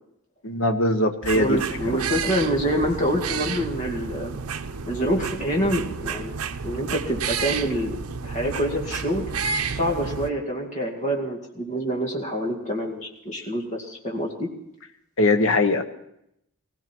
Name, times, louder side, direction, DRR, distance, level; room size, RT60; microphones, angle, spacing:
voice 1, 0.4-1.6 1.9-2.0 15.2-15.8, left 2 dB, 60° left, 7 dB, 1.2 m, -21 dB
sound 1, 1.2-10.3, right 5 dB, 80° right, 0.7 m, -31 dB
voice 2, 1.3-4.4 4.9-6.3 6.6-9.2 9.7-14.5, equal, 35° left, 0 dB, 2.2 m, -26 dB
18.5 x 17.0 x 4.5 m, 0.79 s
head